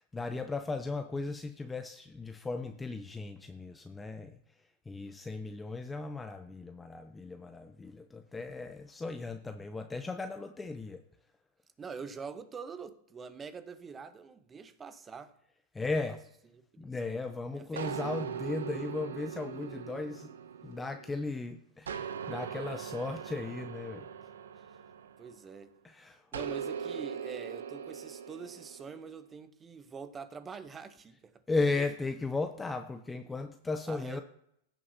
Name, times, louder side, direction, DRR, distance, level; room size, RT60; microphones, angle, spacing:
voice 1, 0.0-4.4 4.9-11.0 15.7-16.2 16.8-20.3 20.6-24.1 25.8-26.3 31.5-34.2, left 3 dB, 10° left, 0.6 m, -36 dB
voice 2, 11.8-15.3 16.1-16.2 16.5-17.2 17.5-18.2 25.2-25.8 26.3-31.4 31.7-31.8 33.9-34.2, right 5 dB, 20° right, 0.8 m, -45 dB
sound 1, 17.8-21.3 21.9-25.6 26.3-29.0, right 7 dB, 85° right, 0.7 m, -40 dB
16.0 x 6.5 x 2.8 m
hypercardioid pair, 115°, 0 cm